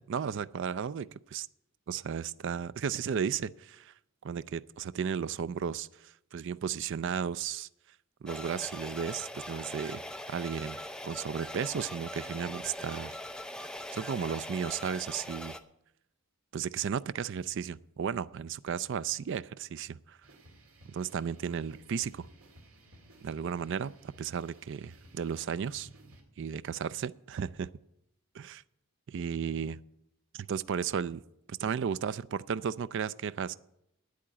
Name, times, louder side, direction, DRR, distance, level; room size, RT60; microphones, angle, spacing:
voice 1, 0.1-1.5 1.9-3.9 4.2-7.7 8.2-10.0 10.3-13.1 13.9-15.6 16.5-20.2 20.9-22.3 23.2-25.9 26.4-27.7 28.3-28.6 29.1-29.8 30.3-31.2 31.5-33.6, right 7 dB, 55° right, 16 dB, 0.4 m, -34 dB
sound 1, 8.3-15.6, left 1 dB, 5° left, 0.5 m, -41 dB
sound 2, 20.2-26.2, right 1 dB, 75° right, 2.3 m, -57 dB
9.3 x 8.6 x 8.9 m, 0.81 s
head